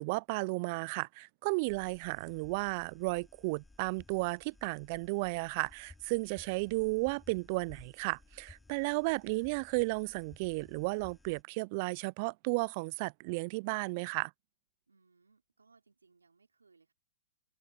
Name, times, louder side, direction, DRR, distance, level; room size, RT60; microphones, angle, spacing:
voice 1, 0.0-14.3, right 28 dB, 45° right, 0.4 m, -34 dB
sound 1, 1.7-11.4, left 3 dB, 5° left, 3.7 m, -59 dB
voice 2, 8.8-9.1 14.9-16.9, right 4 dB, 85° right, 5.3 m, -67 dB
hypercardioid pair, 120°, 0 cm